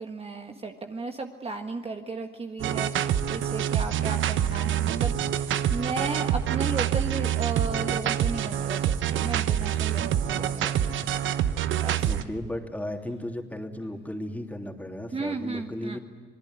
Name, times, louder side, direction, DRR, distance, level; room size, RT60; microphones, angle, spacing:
voice 1, 0.0-11.3 11.8-12.2 15.1-16.0, right 3 dB, 30° right, 4 dB, 1.6 m, -35 dB
sound 1, 2.6-12.2, right 10 dB, 75° right, 1.1 m, -26 dB
voice 2, 12.0-16.0, left 1 dB, 10° left, 3 dB, 3.2 m, -35 dB
27.0 x 20.0 x 9.6 m, 1.4 s
cardioid pair, 90°, 20 cm